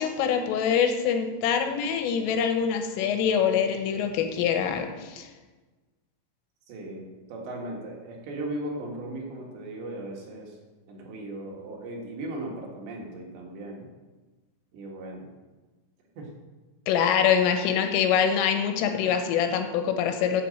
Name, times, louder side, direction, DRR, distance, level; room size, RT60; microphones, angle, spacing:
voice 1, 0.0-5.3 16.9-20.4, left 7 dB, 85° left, 6 dB, 3.6 m, -24 dB
voice 2, 6.7-10.6 10.9-13.9 14.7-15.3 16.2-16.3, right 1 dB, 65° right, -1 dB, 3.7 m, -37 dB
10.5 x 7.7 x 7.7 m, 1.3 s
omnidirectional pair, 5.8 m